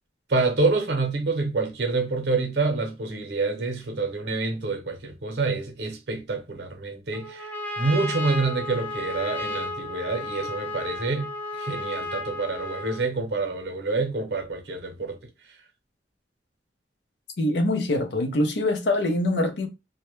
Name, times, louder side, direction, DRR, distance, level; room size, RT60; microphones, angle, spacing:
voice 1, 0.3-11.3 11.6-15.2, right 3 dB, 70° right, 0.7 m, -27 dB
Trumpet, 7.1-13.1, left 2 dB, 10° left, 0.4 m, -33 dB
voice 2, 17.4-19.7, left 1 dB, 75° left, 0.5 m, -24 dB
2.1 x 2.1 x 3.0 m
head